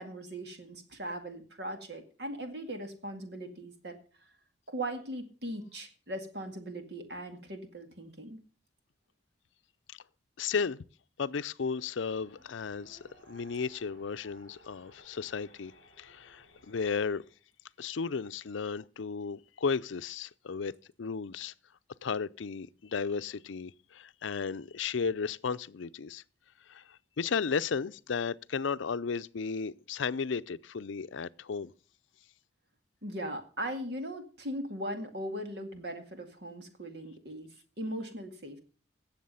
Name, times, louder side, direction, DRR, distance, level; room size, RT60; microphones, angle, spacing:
voice 1, 0.0-3.9 4.7-8.4 33.0-37.5 37.8-38.6, right 1 dB, 60° right, 2.1 m, -39 dB
voice 2, 10.4-10.8 11.2-13.0 13.3-17.2 17.8-20.7 21.0-21.5 22.0-26.2 26.7-31.7, left 5 dB, 90° left, 0.5 m, -34 dB
Race car auto racing, 12.1-17.4, equal, 90° right, 4.0 m, -59 dB
17.0 x 7.3 x 5.6 m
head